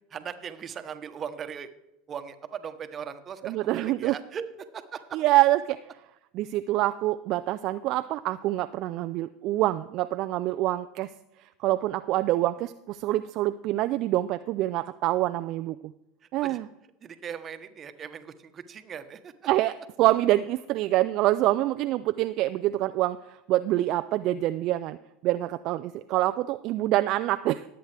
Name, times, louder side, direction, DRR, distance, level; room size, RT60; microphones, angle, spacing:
voice 1, 0.1-1.7 2.1-4.4 4.7-5.2 16.4-16.6 17.0-19.3, right 7 dB, 35° right, 10 dB, 1.0 m, -39 dB
voice 2, 3.4-4.2 5.1-5.8 6.3-11.1 11.6-15.8 16.3-16.7 19.5-25.0 25.2-27.6, right 16 dB, 55° right, 11 dB, 0.3 m, -26 dB
19.0 x 8.0 x 3.4 m, 0.89 s
hypercardioid pair, 90°, 0 cm